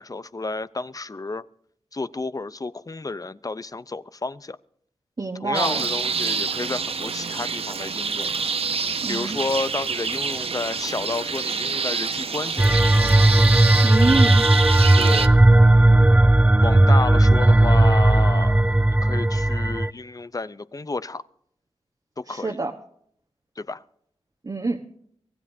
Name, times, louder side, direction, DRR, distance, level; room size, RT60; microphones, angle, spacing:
voice 1, 0.0-1.4 1.9-4.6 5.4-8.3 9.1-12.8 15.0-15.3 16.6-18.6 19.0-21.2 22.2-22.6 23.6-23.8, left 3 dB, 35° left, 0.6 m, -31 dB
voice 2, 5.2-5.9 9.0-9.4 13.8-14.5 22.3-22.7 24.4-24.8, right 3 dB, 40° right, 1.2 m, -26 dB
sound 1, 5.5-15.3, right 5 dB, 65° right, 0.7 m, -27 dB
sound 2, 12.6-19.9, right 1 dB, 10° right, 0.5 m, -16 dB
24.0 x 16.0 x 2.7 m
wide cardioid pair, 60°, 11 cm